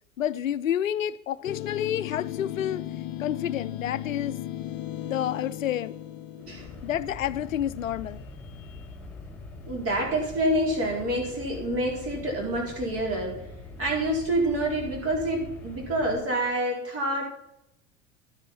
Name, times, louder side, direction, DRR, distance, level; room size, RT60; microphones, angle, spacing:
voice 1, 0.2-2.8 3.2-4.4 5.0-6.0 6.8-8.2 8.6-8.8, left 10 dB, 80° left, 0.5 m, -29 dB
sound 1, 1.5-8.1, left 13 dB, 45° left, 0.8 m, -36 dB
sound 2, 6.4-16.2, left 2 dB, 5° left, 5.1 m, -43 dB
voice 2, 9.7-13.5 13.8-17.2, right 1 dB, 35° right, 4.4 m, -27 dB
12.0 x 9.8 x 4.3 m
figure-of-eight pair, 80°, 39 cm